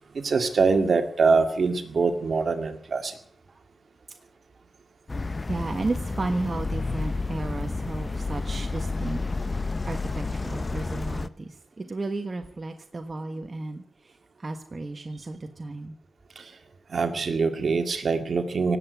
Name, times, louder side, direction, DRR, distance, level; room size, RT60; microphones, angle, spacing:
voice 1, 0.1-3.1 16.4-16.5 16.9-18.8, right 4 dB, 55° right, 7 dB, 2.0 m, -24 dB
sound 1, 5.1-11.3, left 3 dB, 30° left, 0.7 m, -30 dB
voice 2, 5.1-9.2 9.5-16.0, right 2 dB, 35° right, 5 dB, 1.4 m, -34 dB
18.5 x 8.1 x 9.5 m, 0.62 s
wide cardioid pair, 90°, 0 cm